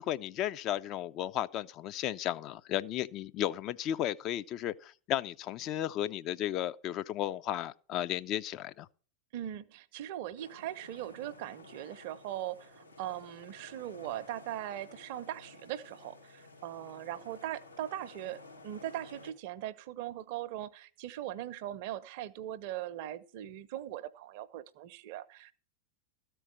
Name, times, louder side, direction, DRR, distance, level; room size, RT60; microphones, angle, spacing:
voice 1, 0.0-8.9, left 12 dB, 35° left, 0.4 m, -34 dB
voice 2, 9.3-25.5, right 12 dB, 50° right, 0.6 m, -40 dB
sound 1, 10.4-19.3, left 2 dB, 85° left, 1.4 m, -54 dB
13.5 x 4.6 x 7.6 m
figure-of-eight pair, 90°, 0 cm